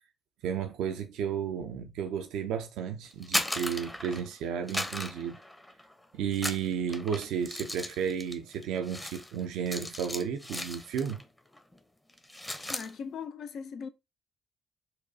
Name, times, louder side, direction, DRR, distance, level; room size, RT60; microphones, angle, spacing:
voice 1, 0.4-5.4 6.1-11.2, right 8 dB, 70° right, 0.4 m, -33 dB
sound 1, 3.1-4.3 4.7-5.9 6.3-11.3 11.5-11.8 12.1-12.9, left 1 dB, 15° left, 0.7 m, -36 dB
voice 2, 12.7-13.9, left 6 dB, 60° left, 0.4 m, -39 dB
4.1 x 2.2 x 2.7 m
hypercardioid pair, 45°, 0 cm